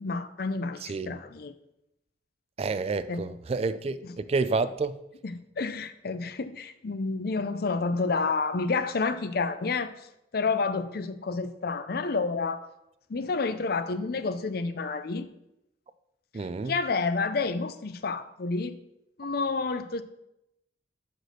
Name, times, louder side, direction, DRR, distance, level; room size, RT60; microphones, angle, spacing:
voice 1, 0.0-1.5 3.1-3.4 4.0-4.2 5.2-12.7 13.1-15.3 16.3-18.8 19.2-20.0, left 4 dB, 60° left, 12 dB, 0.5 m, -30 dB
voice 2, 0.8-1.2 2.6-4.9 16.3-16.7, right 4 dB, 35° right, 13 dB, 0.3 m, -29 dB
6.0 x 5.1 x 6.6 m, 0.86 s
head